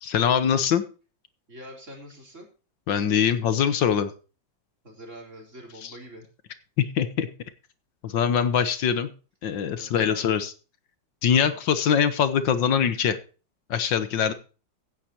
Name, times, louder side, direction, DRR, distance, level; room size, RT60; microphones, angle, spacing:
voice 1, 0.0-0.8 2.9-4.1 5.8-5.9 6.8-7.3 8.0-9.1 9.4-10.5 11.2-13.2 13.7-14.3, left 8 dB, 75° left, 12 dB, 1.8 m, -23 dB
voice 2, 1.5-2.5 4.8-6.3 9.8-10.4 11.4-11.6 14.3-14.4, equal, 40° right, 0 dB, 4.3 m, -44 dB
16.0 x 9.9 x 3.0 m, 0.35 s
omnidirectional pair, 2.0 m